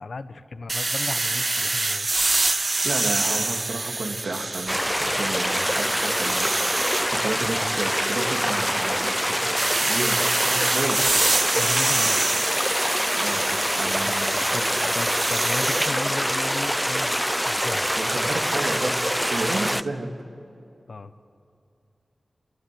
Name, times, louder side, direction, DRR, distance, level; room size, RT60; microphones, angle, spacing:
voice 1, 0.0-2.1 11.6-12.5 13.9-14.6 14.9-17.9 20.9-21.1, left 3 dB, 70° left, 11 dB, 1.0 m, -35 dB
sound 1, 0.7-5.0 5.4-7.1 9.6-15.9, right 3 dB, 45° right, 0.5 m, -26 dB
voice 2, 2.8-6.5 6.8-9.4 9.8-11.3 13.2-14.9 18.0-19.0 19.3-20.1, right 2 dB, 85° right, 2 dB, 2.5 m, -32 dB
sound 2, 4.7-19.8, equal, ahead, 0.6 m, -25 dB
28.0 x 20.0 x 7.8 m, 2.5 s
wide cardioid pair, 60°, 0 cm